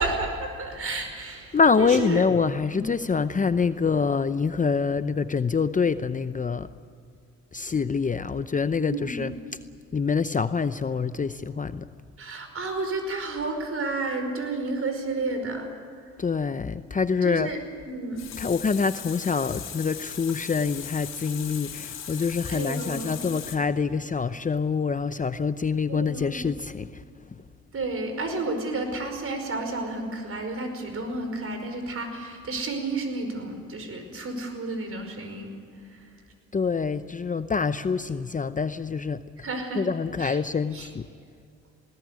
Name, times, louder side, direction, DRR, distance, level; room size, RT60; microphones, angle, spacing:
voice 1, 0.0-2.3 2.7-2.9 8.8-9.2 12.2-15.7 17.2-17.6 17.9-18.2 22.5-23.2 25.9-26.4 27.7-35.5 35.8-36.0 39.4-39.8 40.2-40.4 40.7-40.9, right 2 dB, 50° right, 5 dB, 5.3 m, -31 dB
voice 2, 1.5-6.7 7.5-9.3 9.9-11.9 16.2-17.5 18.4-27.0 36.5-39.2 39.8-41.1, left 5 dB, 25° left, 12 dB, 0.7 m, -25 dB
Water tap faucet, 17.9-23.6, left 8 dB, 60° left, 3.7 m, -38 dB
20.5 x 17.5 x 9.6 m, 2.3 s
cardioid pair, 90°, 30 cm